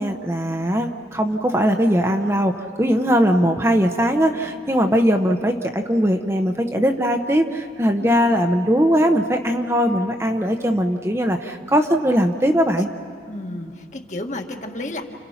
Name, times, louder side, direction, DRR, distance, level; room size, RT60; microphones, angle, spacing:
voice 1, 0.0-12.9, equal, 15° right, 4 dB, 1.0 m, -20 dB
voice 2, 8.0-8.3 13.3-15.0, left 1 dB, 40° left, 3 dB, 1.8 m, -31 dB
29.5 x 29.5 x 5.8 m, 2.3 s
head